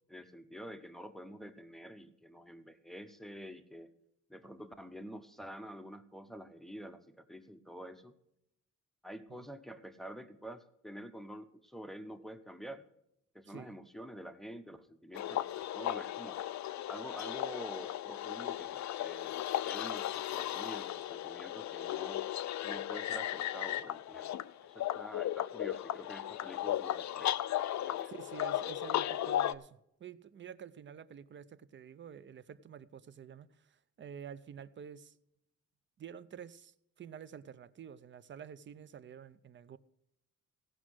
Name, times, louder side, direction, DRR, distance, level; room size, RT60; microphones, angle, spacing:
voice 1, 0.1-3.9 4.3-8.1 9.0-12.8 13.3-16.4 16.9-19.4 19.6-22.2 22.6-24.3 24.6-27.4 27.8-28.1, equal, ahead, 0.7 m, -48 dB
voice 2, 13.5-13.8 28.1-35.2 36.0-39.8, right 8 dB, 40° right, 0.5 m, -49 dB
sound 1, 15.1-29.6, left 12 dB, 65° left, 0.5 m, -36 dB
16.5 x 6.2 x 6.2 m
wide cardioid pair, 175°, 31 cm